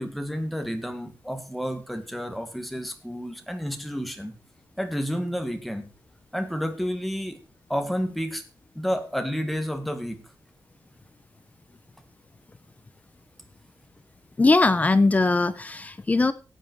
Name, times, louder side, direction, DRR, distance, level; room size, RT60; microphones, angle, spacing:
voice 1, 0.0-4.3 4.8-5.9 6.3-7.4 7.7-8.4 8.7-10.2, equal, ahead, 1.7 m, -30 dB
voice 2, 14.4-16.3, left 3 dB, 20° left, 0.7 m, -20 dB
15.5 x 8.8 x 4.6 m
wide cardioid pair, 170°, 8 cm